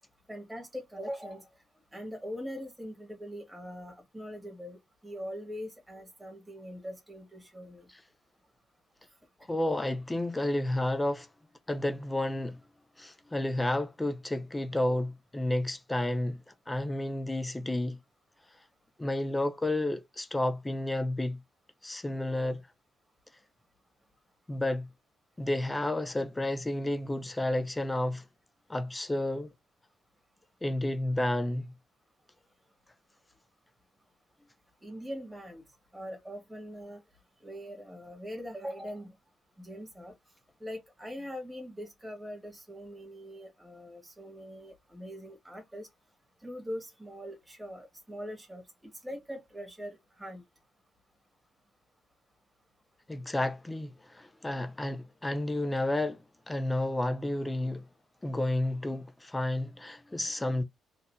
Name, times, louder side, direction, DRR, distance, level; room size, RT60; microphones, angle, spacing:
voice 1, 0.3-1.5 1.9-7.9 34.8-35.6 35.9-37.0 37.4-39.1 39.6-40.1 40.6-45.9 46.4-48.6 49.0-50.4, equal, 10° right, 1.8 m, -42 dB
voice 2, 9.5-11.3 11.7-12.6 13.0-16.4 16.7-18.0 19.0-21.4 21.8-22.6 24.5-24.9 25.4-28.2 28.7-29.5 30.6-31.7 53.1-56.2 56.5-57.8 58.2-60.6, left 1 dB, 15° left, 0.6 m, -31 dB
4.1 x 2.6 x 2.8 m
cardioid pair, 90°, 0 cm